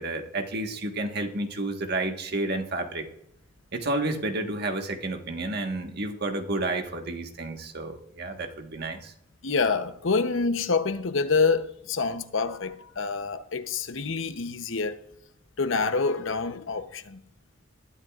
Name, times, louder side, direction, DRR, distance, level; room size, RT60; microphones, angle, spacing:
voice 1, 0.0-3.1 3.7-9.1, right 2 dB, 55° right, 1.5 m, -31 dB
voice 2, 9.4-15.0 15.6-17.2, left 4 dB, 85° left, 0.8 m, -27 dB
20.0 x 12.0 x 2.5 m
head